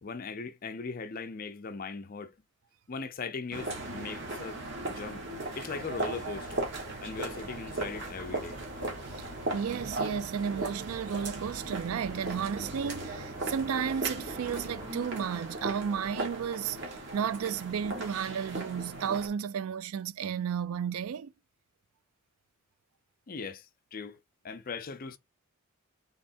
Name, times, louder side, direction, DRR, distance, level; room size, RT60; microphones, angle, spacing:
voice 1, 0.0-2.3 2.9-5.2 5.6-6.7 7.0-8.6 9.1-9.2 23.3-23.7 23.9-24.2 24.4-25.2, left 4 dB, 40° left, 0.5 m, -39 dB
sound 1, 3.5-19.3, right 2 dB, 55° right, 1.4 m, -38 dB
sound 2, 6.3-14.9, right 1 dB, 40° right, 1.3 m, -47 dB
voice 2, 9.5-21.3, right 7 dB, 80° right, 0.4 m, -33 dB
sound 3, 11.9-18.4, right 1 dB, 20° right, 0.7 m, -49 dB
3.5 x 3.2 x 4.2 m
head